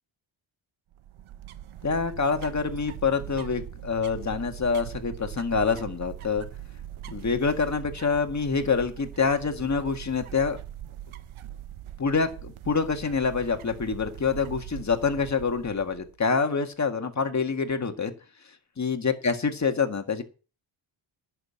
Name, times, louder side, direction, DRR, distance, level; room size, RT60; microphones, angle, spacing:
sound 1, 0.9-16.2, right 12 dB, 75° right, 1.0 m, -41 dB
voice 1, 1.8-6.5 7.1-10.6 12.0-18.1 18.8-20.2, left 5 dB, 35° left, 6 dB, 1.8 m, -26 dB
11.0 x 6.3 x 8.6 m, 0.35 s
wide cardioid pair, 115°, 50 cm